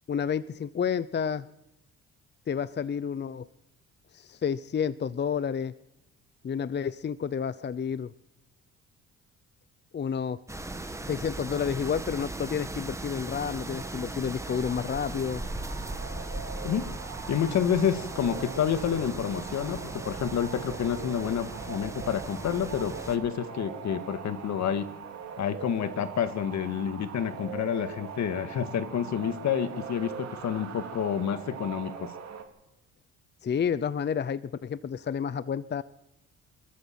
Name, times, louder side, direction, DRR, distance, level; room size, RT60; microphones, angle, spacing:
voice 1, 0.1-1.4 2.5-3.5 4.1-5.7 6.4-8.1 9.9-10.4 11.0-15.4 33.4-35.8, left 7 dB, 35° left, 16 dB, 0.7 m, -30 dB
sound 1, 10.5-23.2, right 2 dB, 10° right, 2.0 m, -38 dB
sound 2, 13.3-32.4, right 7 dB, 60° right, 3.9 m, -42 dB
voice 2, 17.3-24.9 25.4-32.1, left 8 dB, 65° left, 11 dB, 1.9 m, -29 dB
25.0 x 14.0 x 7.6 m, 0.91 s
cardioid pair, 90°, 30 cm